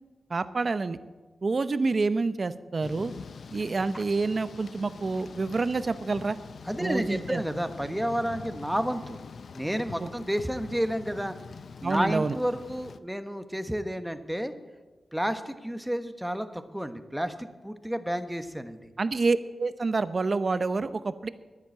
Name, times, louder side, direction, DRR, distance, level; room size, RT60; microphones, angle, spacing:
voice 1, 0.3-1.0 1.4-3.1 3.5-6.4 6.8-7.4 10.0-10.1 11.8-12.4 19.0-21.3, right 3 dB, 50° right, 13 dB, 0.7 m, -28 dB
Thunder / Rain, 2.8-13.0, left 5 dB, 70° left, 0.5 m, -44 dB
voice 2, 6.7-9.2 9.5-11.4 11.8-14.5 15.1-18.9, equal, 5° right, 8 dB, 1.2 m, -31 dB
11.0 x 10.5 x 8.5 m, 1.3 s
cardioid pair, 60°, 0 cm